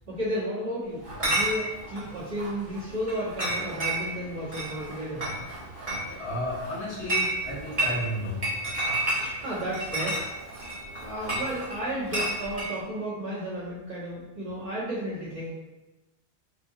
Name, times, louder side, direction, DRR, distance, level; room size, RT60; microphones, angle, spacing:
voice 1, 0.1-5.3 9.1-10.2 11.0-15.5, equal, 55° right, -11 dB, 1.6 m, -33 dB
Chatter / Chink clink, 1.0-12.7, right 1 dB, 35° right, 1.1 m, -31 dB
voice 2, 6.2-8.4, left 1 dB, 80° left, -5 dB, 1.2 m, -32 dB
4.7 x 2.2 x 2.7 m, 1.1 s
omnidirectional pair, 1.1 m